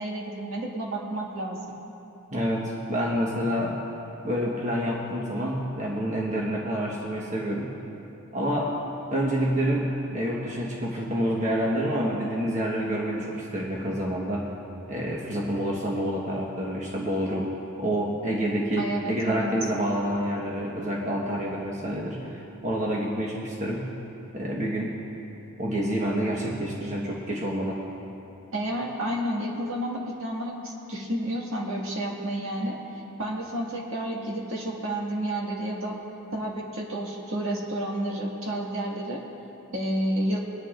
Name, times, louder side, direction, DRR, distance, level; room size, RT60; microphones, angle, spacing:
voice 1, 0.0-1.6 18.8-19.5 28.5-32.8 33.2-36.0 36.3-39.2 39.7-40.4, right 1 dB, 60° right, -3 dB, 1.9 m, -30 dB
voice 2, 2.3-3.8 4.2-7.7 8.3-8.7 9.1-14.5 14.9-17.5 17.8-23.9 24.3-25.0 25.6-27.8, equal, 35° right, -4 dB, 1.3 m, -28 dB
24.0 x 10.5 x 2.5 m, 2.9 s
head